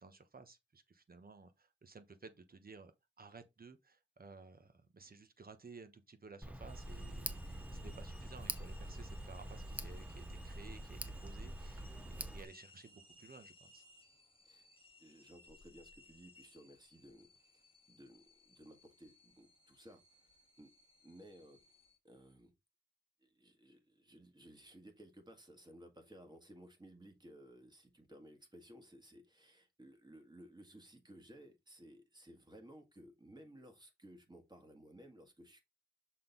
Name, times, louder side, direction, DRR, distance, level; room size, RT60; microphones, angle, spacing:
voice 1, 0.0-2.9 3.2-13.8, right 4 dB, 50° right, 1.1 m, -56 dB
Tick, 6.4-12.5, right 1 dB, 5° right, 0.7 m, -45 dB
sound 1, 6.6-22.0, equal, 30° left, 1.6 m, -63 dB
voice 2, 15.0-17.6 17.9-20.7 21.0-21.6 22.0-22.5 23.2-35.6, right 1 dB, 20° right, 1.8 m, -58 dB
6.6 x 3.8 x 3.9 m
wide cardioid pair, 80°, 19 cm